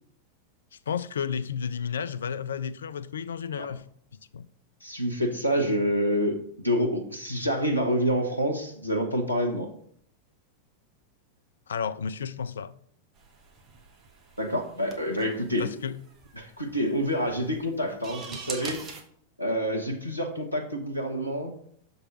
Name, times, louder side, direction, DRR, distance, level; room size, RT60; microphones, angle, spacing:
voice 1, 0.9-3.8 4.3-4.5 11.7-12.7 15.6-16.0, left 7 dB, 65° left, 0.4 m, -32 dB
voice 2, 4.8-9.7 14.4-15.7 16.4-18.8 19.4-21.5, equal, 85° left, 0.9 m, -27 dB
sound 1, 13.2-19.0, right 4 dB, 30° right, 1.3 m, -44 dB
6.6 x 4.0 x 5.9 m
figure-of-eight pair, 90°, 0 cm